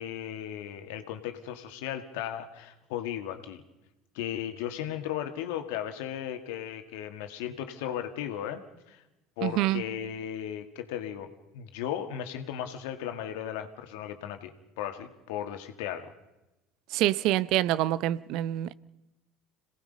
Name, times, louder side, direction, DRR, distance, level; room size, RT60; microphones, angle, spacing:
voice 1, 0.0-3.6 4.1-8.6 8.9-9.0 9.4-16.1, left 10 dB, 75° left, 2.0 m, -36 dB
voice 2, 9.4-9.8 16.9-18.7, right 15 dB, 65° right, 0.7 m, -26 dB
26.5 x 18.5 x 5.4 m
hypercardioid pair, 75°, 0 cm